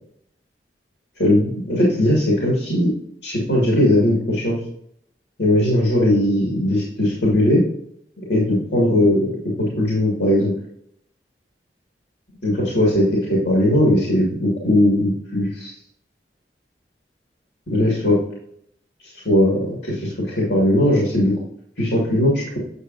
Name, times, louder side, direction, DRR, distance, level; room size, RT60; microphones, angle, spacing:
voice 1, 1.2-2.9 3.2-4.6 5.4-7.6 8.3-9.3 9.6-10.5 12.4-15.7 17.7-18.2 19.2-21.3 21.8-22.6, left 1 dB, 80° left, -4 dB, 2.2 m, -18 dB
8.2 x 6.8 x 2.6 m, 0.70 s
head